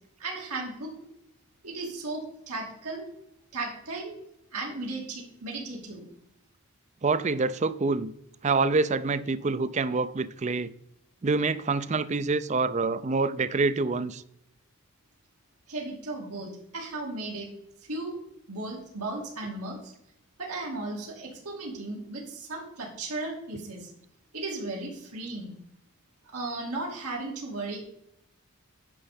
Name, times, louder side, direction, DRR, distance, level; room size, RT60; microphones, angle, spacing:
voice 1, 0.2-0.9 1.6-3.1 3.5-4.1 4.5-6.1 15.7-17.5 17.8-18.2 18.5-19.9 20.4-23.9 24.3-25.5 26.2-27.8, right 2 dB, 85° right, 2.6 m, -35 dB
voice 2, 7.0-8.1 8.4-10.7 11.2-14.2, right 3 dB, 30° right, 0.4 m, -26 dB
9.9 x 5.8 x 5.1 m
head